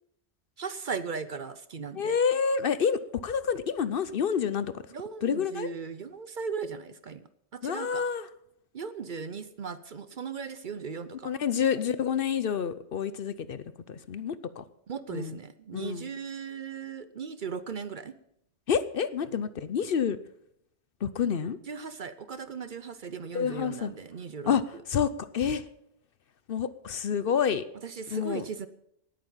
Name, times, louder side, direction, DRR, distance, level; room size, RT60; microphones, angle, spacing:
voice 1, 0.6-2.2 4.9-7.3 7.5-8.0 8.7-11.3 14.9-18.1 21.7-24.5 27.8-28.7, right 5 dB, 50° right, 13 dB, 0.8 m, -37 dB
voice 2, 1.9-4.8 5.2-5.7 7.6-8.3 11.2-14.6 15.1-15.4 15.7-16.1 18.7-20.2 21.0-21.6 23.3-23.9 24.5-24.6 24.9-25.7 26.5-27.6 28.1-28.4, left 7 dB, 60° left, 14 dB, 0.8 m, -28 dB
18.5 x 9.1 x 5.6 m, 0.77 s
omnidirectional pair, 1.2 m